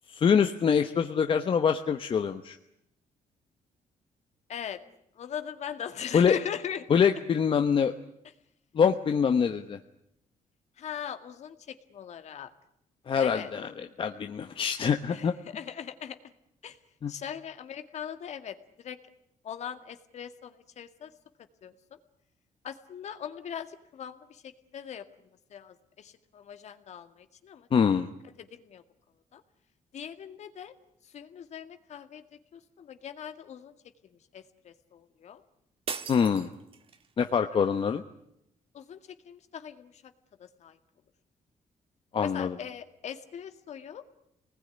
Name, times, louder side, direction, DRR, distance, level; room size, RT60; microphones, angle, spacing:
voice 1, 0.1-2.6 6.1-6.4 6.9-7.9 8.7-9.8 13.1-13.7 14.0-15.3 17.0-17.1 27.7-28.1 36.1-36.5 37.2-38.0 42.1-42.5, left 7 dB, 40° left, 7 dB, 1.1 m, -24 dB
voice 2, 4.5-4.8 5.2-6.9 10.8-12.5 13.2-13.5 15.1-16.2 16.6-16.8 17.1-19.0 19.4-21.1 21.6-22.0 22.6-25.1 25.5-27.7 28.4-28.8 29.3-29.4 29.9-30.7 31.0-32.2 32.5-33.7 34.1-35.4 38.7-40.1 40.4-40.8 42.2-44.0, left 8 dB, 55° left, 8 dB, 2.0 m, -40 dB
sound 1, 35.9-37.1, right 6 dB, 45° right, 1.8 m, -39 dB
26.5 x 20.0 x 9.9 m, 0.79 s
cardioid pair, 145°, 13 cm